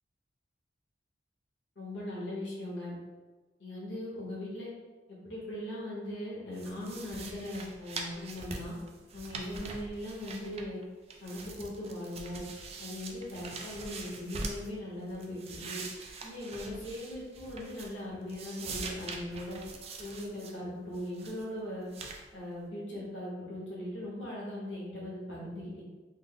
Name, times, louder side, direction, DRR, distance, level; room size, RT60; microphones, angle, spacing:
voice 1, 1.7-2.9 3.6-4.7 5.1-8.7 9.1-10.8 11.2-12.4 12.8-15.8 16.2-19.6 20.0-21.9 22.3-25.8, left 1 dB, 75° left, -6 dB, 1.1 m, -39 dB
sound 1, 6.5-10.8 11.1-14.7 15.1-18.0 18.3-20.5 20.9-21.4 21.9-22.2, right 3 dB, 35° right, 0.4 m, -43 dB
3.4 x 2.0 x 3.7 m, 1.3 s
head